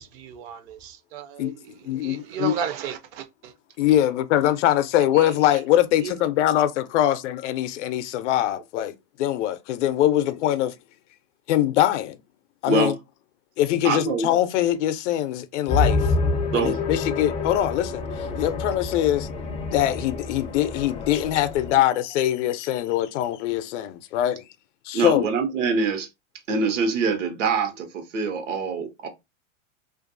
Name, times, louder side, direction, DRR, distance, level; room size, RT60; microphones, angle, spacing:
voice 1, 0.0-3.5 5.1-5.3 6.0-6.1, right 7 dB, 45° right, 0.5 m, -34 dB
voice 2, 1.9-2.5 3.8-10.7 11.5-12.2 12.6-12.9 13.6-16.1 16.6-19.3 19.7-24.4 24.9-25.3, left 12 dB, 70° left, 0.5 m, -23 dB
voice 3, 13.8-14.3 16.5-16.8 24.9-26.1 26.5-29.1, right 4 dB, 75° right, 0.9 m, -24 dB
sound 1, 15.7-21.7, left 3 dB, 20° left, 0.4 m, -27 dB
2.5 x 2.3 x 2.5 m
hypercardioid pair, 110°, 37 cm